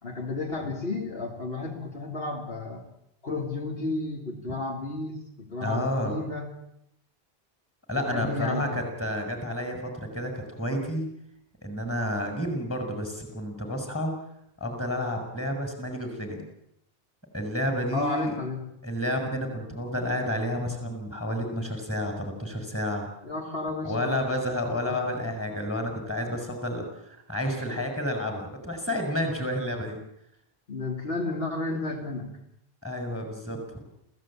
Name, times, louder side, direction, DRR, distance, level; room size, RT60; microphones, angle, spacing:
voice 1, 0.0-2.8 3.2-6.5 8.1-8.8 17.9-18.7 23.2-24.2 30.7-32.3, left 3 dB, 70° left, 2 dB, 3.0 m, -32 dB
voice 2, 5.6-6.2 7.9-11.0 11.6-14.1 14.6-16.4 17.3-18.4 18.8-23.1 23.8-30.0 32.8-33.9, equal, 15° left, 4 dB, 6.5 m, -30 dB
28.5 x 16.0 x 9.0 m, 0.77 s
omnidirectional pair, 1.0 m